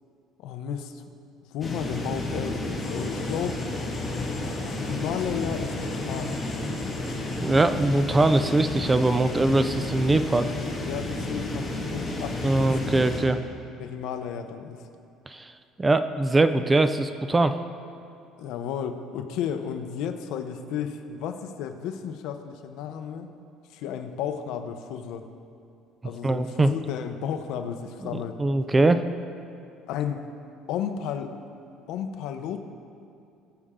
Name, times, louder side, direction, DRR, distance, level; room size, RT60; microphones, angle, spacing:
voice 1, 0.4-1.0 1.5-3.6 4.9-6.3 10.9-12.7 13.2-13.4 13.8-14.8 18.4-23.3 23.7-25.2 26.0-28.4 29.9-30.3 30.7-31.3 31.9-32.6, left 8 dB, 65° left, 7 dB, 0.8 m, -33 dB
sound 1, 1.6-13.2, left 2 dB, 10° left, 1.7 m, -31 dB
sound 2, 2.8-10.2, left 3 dB, 45° left, 2.7 m, -44 dB
voice 2, 7.4-10.5 12.4-13.4 15.3-15.5 15.8-17.6 26.2-26.7 28.1-29.0, right 2 dB, 10° right, 10 dB, 0.3 m, -22 dB
20.5 x 6.9 x 3.7 m, 2.6 s
cardioid pair, 175°, 0 cm